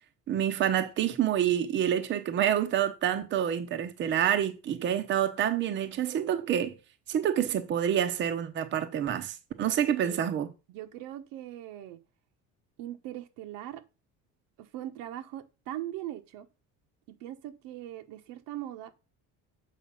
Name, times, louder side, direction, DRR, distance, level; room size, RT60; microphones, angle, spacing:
voice 1, 0.3-6.7 7.1-10.5, right 10 dB, 35° right, 0.8 m, -27 dB
voice 2, 10.7-12.0 12.8-13.8 14.6-16.5 17.1-18.9, right 13 dB, 80° right, 1.3 m, -40 dB
7.4 x 5.4 x 5.5 m
cardioid pair, 165°, 33 cm